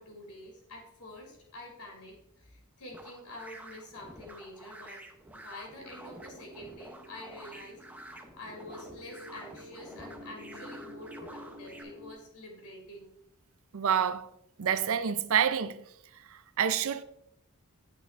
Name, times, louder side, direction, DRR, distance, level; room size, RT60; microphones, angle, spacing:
voice 1, 0.0-5.1 5.3-13.1, left 1 dB, 85° left, 2.6 m, -47 dB
sound 1, 2.9-11.8, right 1 dB, 5° right, 0.7 m, -49 dB
sound 2, 5.7-12.1, left 1 dB, 50° left, 2.7 m, -49 dB
voice 2, 13.7-14.3 14.6-15.8 16.6-17.0, right 8 dB, 65° right, 0.5 m, -27 dB
9.2 x 8.2 x 2.5 m
head